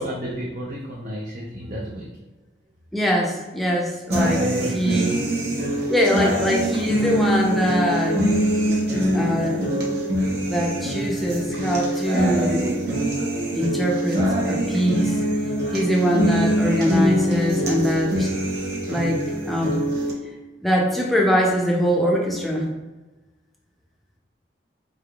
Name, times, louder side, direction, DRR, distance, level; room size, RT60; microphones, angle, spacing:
voice 1, 0.0-2.2 4.2-5.1, equal, 45° right, -4 dB, 0.5 m, -32 dB
voice 2, 2.9-5.2 5.9-8.3 9.1-9.7 10.5-12.7 13.5-15.2 15.7-18.3 18.9-19.2 19.5-19.8 20.6-22.7, equal, ahead, -2 dB, 0.5 m, -23 dB
sound 1, 4.1-20.1, right 1 dB, 65° right, 0.9 m, -23 dB
4.1 x 3.4 x 2.3 m, 1.1 s
head